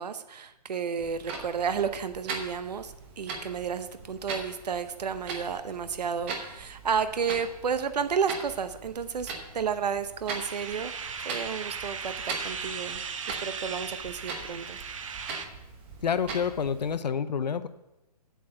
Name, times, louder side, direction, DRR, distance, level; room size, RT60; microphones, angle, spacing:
voice 1, 0.0-10.9 11.2-14.8, right 6 dB, 80° right, 11 dB, 0.8 m, -32 dB
Clock, 1.0-17.0, right 4 dB, 15° right, 0.9 m, -41 dB
sound 1, 10.3-15.5, right 6 dB, 50° right, 0.9 m, -37 dB
voice 2, 16.0-17.7, left 7 dB, 80° left, 12 dB, 0.7 m, -28 dB
8.1 x 7.8 x 6.6 m, 0.96 s
hypercardioid pair, 170°, 21 cm